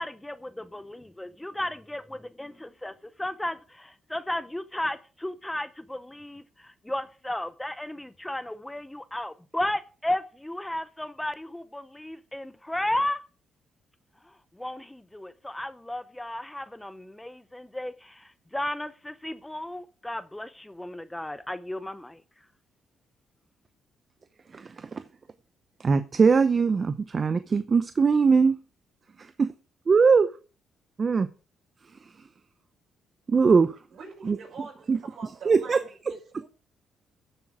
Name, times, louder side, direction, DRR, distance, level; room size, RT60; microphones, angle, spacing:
voice 1, 0.0-13.2 14.6-22.2, left 1 dB, 10° left, 0.7 m, -34 dB
voice 2, 24.5-25.0 25.8-28.6 29.2-29.5 29.9-30.3 31.0-31.3 33.3-33.8 34.2-34.4 34.9-35.0 35.5-35.8, right 5 dB, 40° right, 0.7 m, -21 dB
voice 3, 33.9-35.8 36.0-36.5, right 4 dB, 60° right, 5.8 m, -44 dB
14.0 x 7.4 x 4.9 m
cardioid pair, 90°, 0 cm